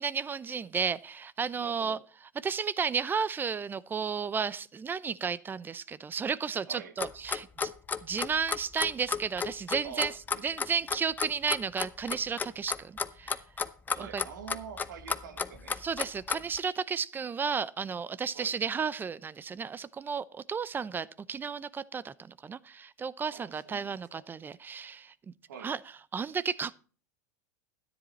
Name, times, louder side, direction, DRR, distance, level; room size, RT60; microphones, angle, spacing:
voice 1, 0.0-2.0 2.4-7.7 8.0-10.1 10.4-13.4 14.0-14.2 15.8-25.1 25.6-25.8 26.1-26.7, right 6 dB, 20° right, 0.6 m, -33 dB
voice 2, 1.6-2.0 6.6-7.0 9.8-10.8 13.9-15.8 18.3-18.5 23.3-24.2 25.5-25.7, right 8 dB, 80° right, 1.4 m, -46 dB
Clock, 7.0-16.6, left 5 dB, 20° left, 0.7 m, -32 dB
13.0 x 10.0 x 4.2 m
hypercardioid pair, 105°, 10 cm